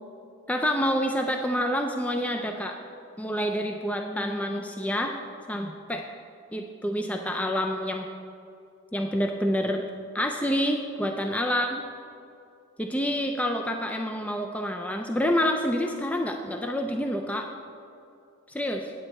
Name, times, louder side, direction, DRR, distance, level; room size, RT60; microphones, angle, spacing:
voice 1, 0.5-2.8 3.2-5.2 5.5-6.0 6.5-8.1 8.9-9.8 10.1-11.8 12.8-17.5 18.5-18.9, equal, 5° left, 3 dB, 0.3 m, -27 dB
8.9 x 8.9 x 4.2 m, 2.5 s
head